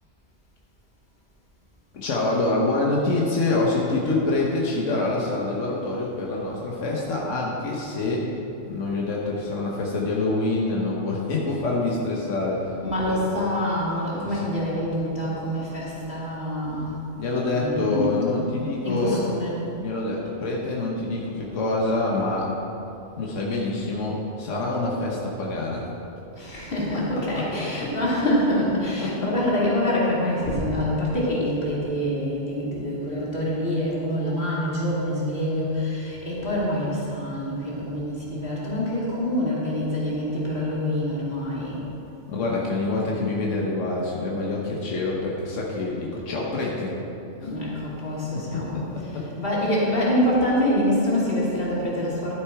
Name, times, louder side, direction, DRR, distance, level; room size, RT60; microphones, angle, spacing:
voice 1, 1.9-8.3 8.7-12.8 13.1-13.4 14.1-14.5 17.1-19.2 19.8-22.5 23.2-25.8 29.0-29.1 42.3-46.9 47.4-47.5 48.3-49.2, left 2 dB, 90° left, -3 dB, 1.4 m, -26 dB
voice 2, 12.8-17.0 17.5-18.4 18.8-19.6 26.3-41.8 47.4-48.8 49.1-52.3, left 1 dB, 50° left, -6 dB, 2.4 m, -26 dB
11.5 x 6.7 x 4.8 m, 2.8 s
omnidirectional pair, 1.2 m